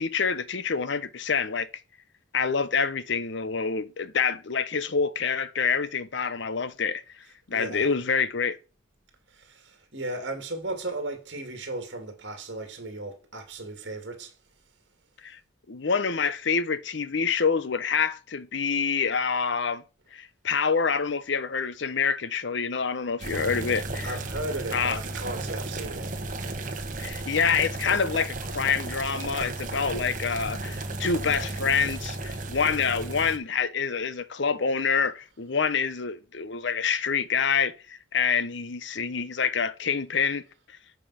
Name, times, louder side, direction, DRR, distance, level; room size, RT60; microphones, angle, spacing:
voice 1, 0.0-1.7 2.3-7.0 7.5-8.6 15.2-15.4 15.7-19.8 20.1-24.2 24.7-25.0 27.0-40.4, left 5 dB, 60° left, 0.7 m, -27 dB
voice 2, 7.5-7.9 9.3-14.3 24.0-26.1, right 2 dB, 55° right, 2.2 m, -36 dB
sound 1, 23.2-33.4, right 2 dB, 40° right, 1.3 m, -34 dB
8.7 x 5.4 x 5.6 m
head